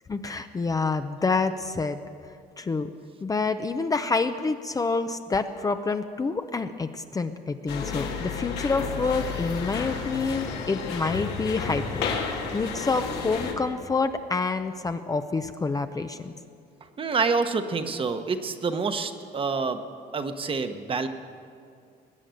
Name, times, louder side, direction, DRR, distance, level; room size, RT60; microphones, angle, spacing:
voice 1, 0.1-2.0 2.6-2.9 3.2-16.3, left 4 dB, 20° left, 8 dB, 0.6 m, -28 dB
sound 1, 7.7-13.5, left 5 dB, 80° left, 2.1 m, -32 dB
voice 2, 17.0-19.8 20.1-21.1, right 4 dB, 30° right, 8 dB, 1.1 m, -27 dB
20.5 x 9.0 x 7.7 m, 2.3 s
cardioid pair, 110°, 17 cm